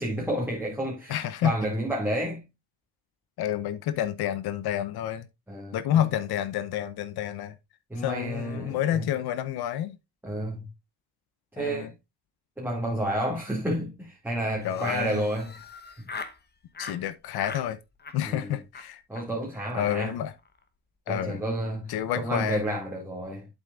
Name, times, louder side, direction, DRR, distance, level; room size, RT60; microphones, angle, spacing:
voice 1, 0.0-2.4 5.5-6.1 7.9-9.1 10.2-10.7 11.5-11.9 12.6-15.6 16.0-16.1 18.3-18.6 19.1-20.2 21.1-23.5, right 1 dB, 5° right, 2.2 m, -30 dB
voice 2, 1.1-1.5 3.4-5.3 5.7-7.6 8.0-10.0 11.6-11.9 14.6-15.2 16.8-17.8 18.1-19.0 19.7-20.3 21.1-21.4 21.9-22.6, left 11 dB, 85° left, 0.8 m, -29 dB
Laughter, 14.6-16.4 16.7-17.0 17.3-17.7 18.0-18.4 18.7-18.9 19.2-19.3 19.5-19.6 19.9-20.0 20.3-20.6, left 4 dB, 25° left, 1.0 m, -41 dB
8.2 x 7.3 x 2.4 m
cardioid pair, 120°, 37 cm